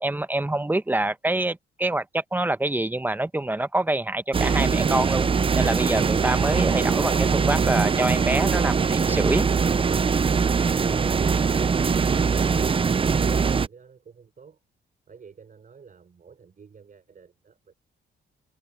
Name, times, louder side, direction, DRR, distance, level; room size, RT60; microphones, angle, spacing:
voice 1, 0.0-9.4, right 2 dB, 10° right, 1.0 m, -26 dB
sound 1, 4.3-13.7, right 5 dB, 25° right, 0.6 m, -22 dB
voice 2, 12.8-14.6 15.1-17.7, right 6 dB, 40° right, 6.2 m, -50 dB
cardioid pair, 90°, 20 cm